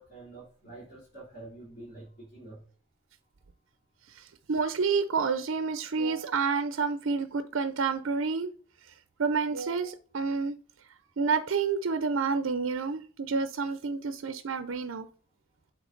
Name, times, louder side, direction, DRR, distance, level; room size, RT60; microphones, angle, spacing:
voice 1, 0.0-2.6, right 2 dB, 50° left, -7 dB, 3.5 m, -47 dB
voice 2, 4.2-8.5 9.2-10.6 11.2-15.1, right 5 dB, 65° right, 11 dB, 0.5 m, -29 dB
8.2 x 3.5 x 3.9 m, 0.42 s
head